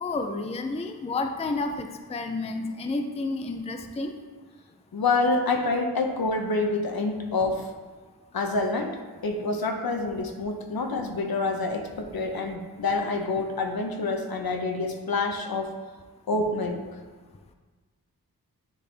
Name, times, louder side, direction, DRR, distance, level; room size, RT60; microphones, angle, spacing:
voice 1, 0.0-4.1, left 3 dB, 15° left, 6 dB, 0.4 m, -30 dB
voice 2, 4.9-7.7 8.3-15.7 16.3-16.8, left 3 dB, 65° left, 4 dB, 0.8 m, -27 dB
10.0 x 3.4 x 3.3 m, 1.4 s
wide cardioid pair, 85°, 39 cm